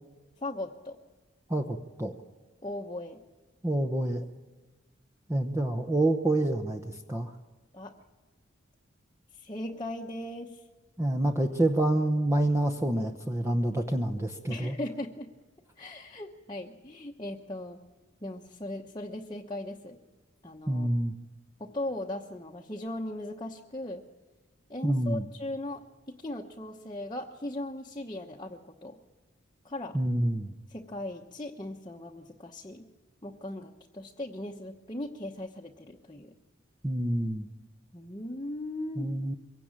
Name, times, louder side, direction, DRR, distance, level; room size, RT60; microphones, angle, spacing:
voice 1, 0.4-1.0 2.6-3.2 7.7-8.0 9.3-10.6 14.5-15.3 15.8-17.8 18.2-20.0 20.4-20.9 21.6-24.0 24.7-29.0 29.6-30.0 30.7-32.9 33.2-36.3 37.9-39.1, left 1 dB, 20° left, -1 dB, 1.0 m, -38 dB
voice 2, 1.5-2.1 3.6-4.2 5.3-7.3 11.0-14.7 20.7-21.1 24.8-25.2 29.9-30.5 36.8-37.5 39.0-39.3, right 1 dB, 15° right, 5 dB, 0.8 m, -27 dB
23.0 x 17.0 x 8.8 m, 1.3 s
head